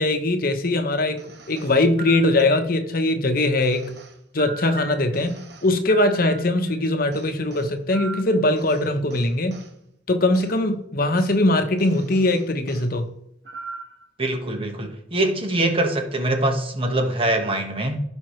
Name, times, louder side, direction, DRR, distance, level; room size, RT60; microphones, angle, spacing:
voice 1, 0.0-3.9 4.3-9.6 10.1-13.1, left 2 dB, 50° left, 1.0 m, -21 dB
sound 1, 1.2-2.9 3.6-6.8 7.1-9.7 10.3-10.5 11.2-11.4 11.8-12.9 13.4-14.1, right 5 dB, 65° right, 1.3 m, -40 dB
voice 2, 14.2-18.0, right 1 dB, 30° right, 1.5 m, -23 dB
16.0 x 5.4 x 3.2 m
head